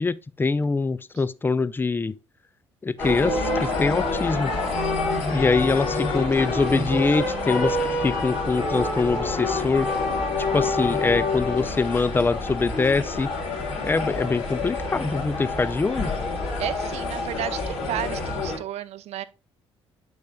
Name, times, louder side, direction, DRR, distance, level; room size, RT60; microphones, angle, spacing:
voice 1, 0.0-2.2 2.8-4.5 5.3-9.9 10.4-13.3 13.8-16.1, left 4 dB, 15° left, 0.4 m, -24 dB
sound 1, 3.0-18.6, left 3 dB, 55° left, 3.1 m, -27 dB
voice 2, 16.6-19.2, right 12 dB, 50° right, 0.6 m, -32 dB
8.5 x 6.3 x 2.2 m
figure-of-eight pair, 45°, 14 cm